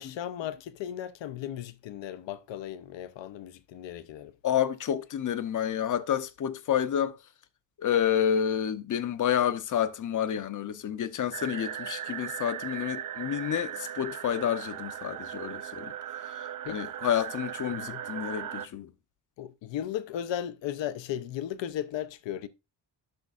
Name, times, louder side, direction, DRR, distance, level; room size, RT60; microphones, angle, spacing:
voice 1, 0.0-4.3 16.6-16.8 17.7-18.0 19.4-22.5, left 10 dB, 85° left, 0.7 m, -36 dB
voice 2, 4.4-7.2 7.8-15.9 16.3-18.9, left 9 dB, 45° left, 0.6 m, -29 dB
sound 1, 11.3-18.7, right 10 dB, 50° right, 0.5 m, -38 dB
10.5 x 6.1 x 2.4 m
wide cardioid pair, 145°, 43 cm